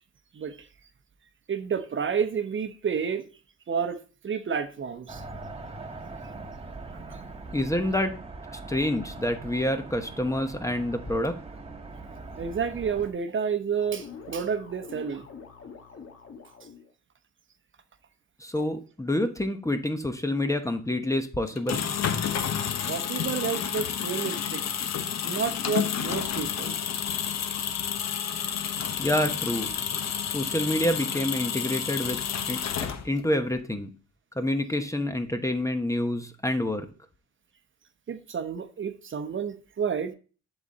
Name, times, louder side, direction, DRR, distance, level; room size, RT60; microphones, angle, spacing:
voice 1, 0.3-0.7 1.5-3.2 3.7-4.0 4.2-5.2 7.1-7.2 12.4-15.3 22.9-24.6 25.2-26.7 38.1-40.1, right 6 dB, 40° right, 0.9 m, -30 dB
sound 1, 5.1-13.1, right 3 dB, 20° right, 1.2 m, -41 dB
voice 2, 7.5-8.1 8.5-11.3 18.4-21.9 29.0-29.8 30.2-32.2 32.5-33.9 34.4-36.9, left 1 dB, 10° left, 0.9 m, -28 dB
sound 2, 13.8-16.9, left 6 dB, 45° left, 1.7 m, -45 dB
sound 3, 21.5-33.3, left 8 dB, 60° left, 1.0 m, -30 dB
11.0 x 4.1 x 4.1 m
cardioid pair, 90°, 30 cm